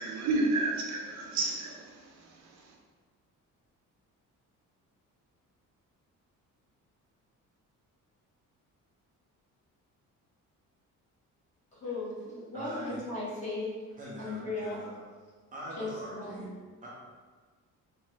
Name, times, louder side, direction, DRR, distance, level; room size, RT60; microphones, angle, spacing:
voice 1, 0.0-2.6, right 2 dB, 60° right, -1 dB, 0.6 m, -31 dB
voice 2, 11.7-13.8 14.2-14.9 15.8-16.4, left 2 dB, 25° left, -8 dB, 0.9 m, -37 dB
voice 3, 12.5-13.0 14.0-15.0 15.5-16.6 16.8-16.9, equal, 25° right, -6 dB, 0.6 m, -42 dB
3.7 x 2.1 x 3.2 m, 1.5 s
cardioid pair, 165°, 32 cm